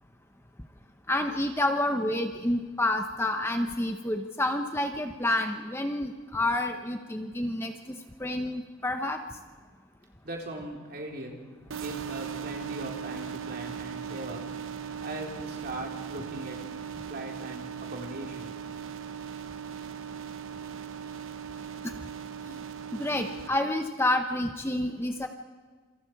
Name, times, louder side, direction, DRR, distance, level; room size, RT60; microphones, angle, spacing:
voice 1, 1.1-9.2 23.0-25.3, left 1 dB, 10° left, 5 dB, 0.8 m, -29 dB
voice 2, 10.2-11.4 11.7-14.4 15.0-16.6 17.1-18.5, right 1 dB, 45° right, 0 dB, 3.6 m, -39 dB
sound 1, 11.7-23.5, right 7 dB, 75° right, 0.8 m, -38 dB
27.5 x 25.0 x 4.7 m, 1.5 s
head